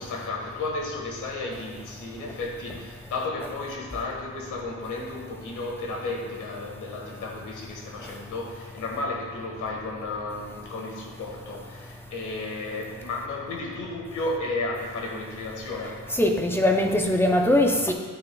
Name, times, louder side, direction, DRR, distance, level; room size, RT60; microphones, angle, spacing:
voice 1, 0.0-16.0, left 2 dB, 60° left, 0 dB, 1.5 m, -33 dB
voice 2, 16.2-17.9, left 1 dB, 5° left, 2 dB, 0.5 m, -21 dB
9.5 x 8.5 x 2.3 m, 1.5 s
wide cardioid pair, 155°, 34 cm